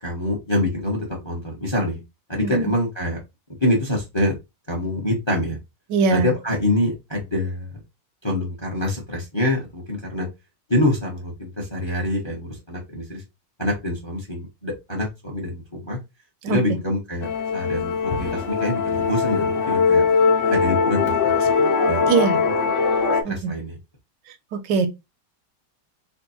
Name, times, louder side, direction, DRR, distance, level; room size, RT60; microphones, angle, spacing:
voice 1, 0.0-2.0 2.3-3.2 3.6-4.3 4.7-5.6 6.1-7.8 8.2-10.3 10.7-13.2 13.6-16.0 16.5-20.0 20.5-21.5 21.8-22.1 23.3-23.8, left 1 dB, 20° left, 1.0 m, -25 dB
voice 2, 2.4-2.7 5.9-6.3 16.4-16.6 22.1-22.4 23.2-23.5 24.5-24.9, right 5 dB, 85° right, 1.4 m, -21 dB
Musical instrument, 17.2-23.2, left 5 dB, 80° left, 1.5 m, -21 dB
3.6 x 2.4 x 4.1 m
omnidirectional pair, 1.9 m